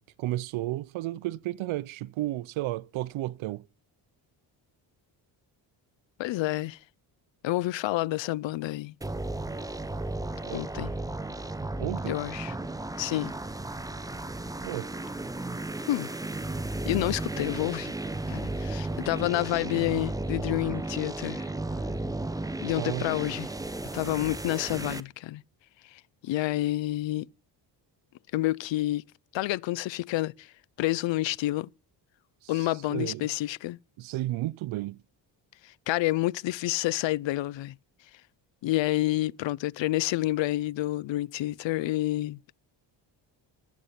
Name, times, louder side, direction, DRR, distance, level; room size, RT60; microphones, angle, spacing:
voice 1, 0.0-3.6 10.4-10.7 11.8-12.2 14.6-14.9 22.8-23.1 32.4-33.3 34.0-35.0, right 16 dB, 85° right, 0.6 m, -33 dB
voice 2, 6.2-6.8 7.4-8.9 10.5-10.9 12.1-12.5 13.0-13.3 15.9-16.1 16.9-17.9 18.3-21.5 22.6-23.5 23.9-25.4 25.9-27.3 28.3-29.0 29.3-30.5 30.8-31.7 32.5-33.8 35.6-37.7 38.6-42.5, left 17 dB, 70° left, 0.5 m, -29 dB
sound 1, 9.0-25.0, right 2 dB, 10° right, 0.7 m, -34 dB
14.0 x 8.4 x 5.8 m
cardioid pair, 100°, 47 cm